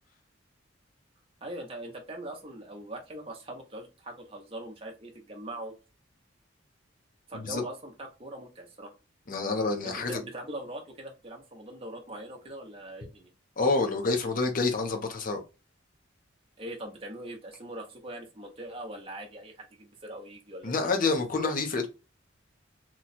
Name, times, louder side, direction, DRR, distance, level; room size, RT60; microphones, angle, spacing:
voice 1, 1.4-5.7 7.3-8.9 9.8-13.3 16.6-20.7, right 1 dB, 30° right, 1 dB, 0.8 m, -41 dB
voice 2, 9.3-10.2 13.6-15.4 20.6-21.9, left 3 dB, 45° left, 4 dB, 0.7 m, -28 dB
3.0 x 2.3 x 4.0 m, 0.30 s
head